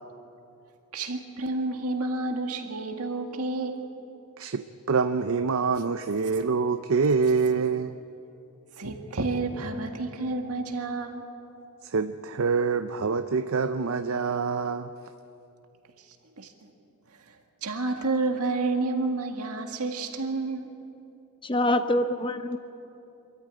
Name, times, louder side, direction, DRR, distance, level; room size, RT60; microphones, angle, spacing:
voice 1, 0.9-3.8 8.8-11.7 16.0-16.1 16.4-16.5 17.1-20.7, right 3 dB, 80° right, 4 dB, 2.0 m, -30 dB
voice 2, 4.4-8.0 11.8-14.9, right 5 dB, 65° right, 10 dB, 0.6 m, -26 dB
voice 3, 21.4-22.6, left 1 dB, 20° left, 10 dB, 0.8 m, -25 dB
25.0 x 14.0 x 9.3 m, 2.8 s
head